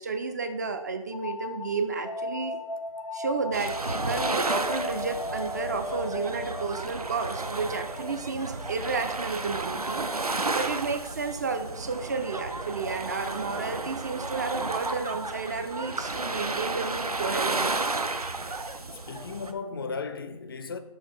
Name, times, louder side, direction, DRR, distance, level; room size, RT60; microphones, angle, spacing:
voice 1, 0.0-2.6 3.1-10.1 10.5-18.0 18.4-18.7, right 4 dB, 30° right, 0.4 m, -32 dB
sound 1, 1.1-10.5, left 1 dB, 85° left, 0.7 m, -37 dB
sound 2, 3.5-19.5, right 3 dB, 85° right, 0.6 m, -32 dB
voice 2, 18.9-20.8, left 4 dB, 40° left, 0.4 m, -35 dB
6.3 x 3.6 x 4.7 m
figure-of-eight pair, 135°, 19 cm